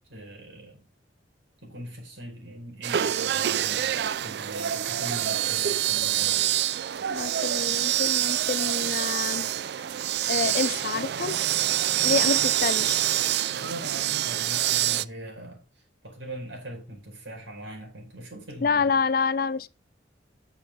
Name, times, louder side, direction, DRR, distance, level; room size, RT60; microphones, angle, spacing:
voice 1, 0.1-0.8 1.6-6.6 13.5-15.6 16.0-18.9, right 1 dB, 80° right, 4.7 m, -41 dB
sound 1, 2.8-15.0, right 12 dB, 60° right, 0.3 m, -26 dB
voice 2, 7.1-9.5 10.3-11.4 12.0-13.0 18.6-19.7, left 5 dB, 50° left, 0.5 m, -27 dB
9.1 x 6.9 x 4.2 m
head